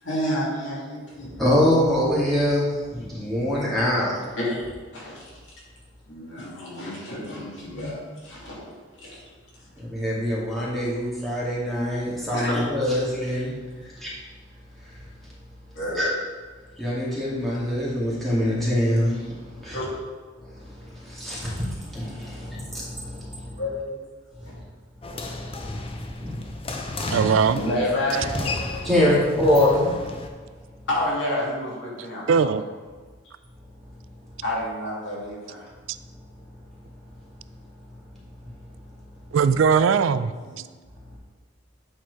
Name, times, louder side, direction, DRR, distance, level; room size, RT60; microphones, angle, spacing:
voice 1, 0.0-1.5 4.4-5.3 6.1-8.7 9.0-9.3 12.3-12.6 15.7-16.0 19.7-19.9 23.6-24.0 24.4-24.5 26.7-26.8 27.5-28.8 30.9-32.5 34.4-35.7 40.4-40.6, left 1 dB, 70° left, -5 dB, 2.5 m, -30 dB
voice 2, 1.4-4.1 9.8-13.5 14.0-14.1 14.8-14.9 15.9-16.1 16.8-19.8 20.4-23.6 25.2-25.7 26.1-26.4 28.8-29.9, left 1 dB, ahead, -8 dB, 2.2 m, -24 dB
sound 1, 25.0-30.3, left 2 dB, 30° left, 0.6 m, -33 dB
voice 3, 27.1-27.6 32.3-32.6 39.3-40.3, right 6 dB, 80° right, 13 dB, 0.4 m, -19 dB
8.6 x 4.5 x 4.7 m, 1.5 s
head